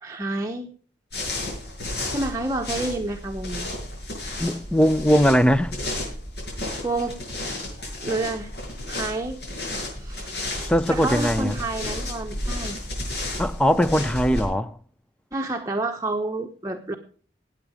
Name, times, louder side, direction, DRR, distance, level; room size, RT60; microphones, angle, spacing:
voice 1, 0.0-0.7 2.1-3.6 6.8-7.2 8.0-8.5 8.9-9.4 10.0-10.3 10.9-12.8 15.3-17.0, right 2 dB, 20° right, 0.9 m, -29 dB
sound 1, 1.1-14.4, left 1 dB, 65° left, 7.3 m, -32 dB
voice 2, 4.4-5.7 10.6-11.6 13.4-14.8, equal, 5° left, 0.5 m, -20 dB
19.0 x 8.3 x 4.9 m
head